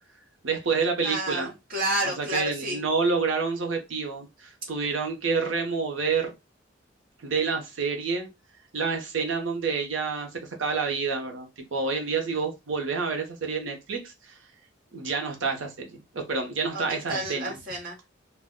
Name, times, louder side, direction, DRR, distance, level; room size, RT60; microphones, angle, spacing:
voice 1, 0.4-1.5 2.2-6.3 7.2-8.3 8.7-10.3 10.6-14.1 14.9-17.6, right 4 dB, 90° right, 0.7 m, -28 dB
voice 2, 1.0-2.8 16.7-18.0, right 1 dB, 45° right, 1.1 m, -30 dB
2.2 x 2.1 x 3.6 m
head